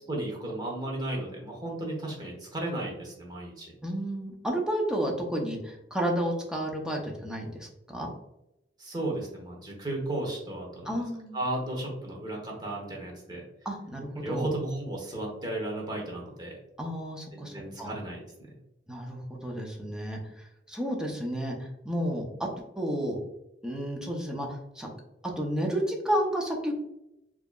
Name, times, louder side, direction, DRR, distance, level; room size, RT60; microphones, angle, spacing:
voice 1, 0.1-3.7 8.8-11.0 11.3-13.4 14.2-16.6 17.3-18.2, right 1 dB, 25° right, -1 dB, 1.0 m, -34 dB
voice 2, 3.8-8.1 10.8-11.4 13.6-14.5 16.8-18.0 18.9-22.5 22.8-23.2 23.6-24.9 25.4-26.7, equal, 5° right, -1 dB, 0.7 m, -31 dB
4.5 x 2.9 x 2.3 m, 0.87 s
head